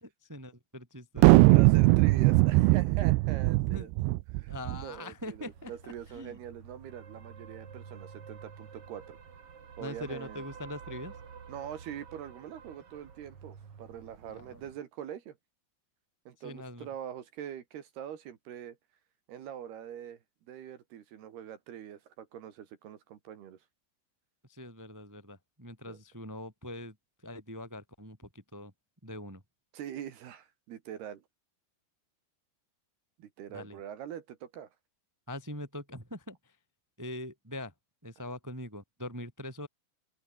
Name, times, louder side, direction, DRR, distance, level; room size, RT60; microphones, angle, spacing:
voice 1, 0.0-1.4 3.6-4.2 4.5-6.4 9.8-11.1 14.3-14.6 16.4-16.9 24.5-26.9 27.2-28.7 29.0-29.4 33.5-33.8 35.3-36.5 37.0-37.7 38.0-39.7, left 1 dB, 5° right, 1.6 m, -43 dB
sound 1, 1.2-4.8, right 22 dB, 85° right, 2.5 m, -21 dB
voice 2, 1.4-3.9 4.3-9.2 9.8-10.4 11.5-15.4 16.3-18.8 19.3-20.2 20.5-23.6 25.9-26.0 29.7-31.2 33.2-34.7, right 10 dB, 65° right, 3.5 m, -43 dB
sound 2, 5.2-14.8, right 6 dB, 40° right, 2.7 m, -50 dB
open air
omnidirectional pair, 5.5 m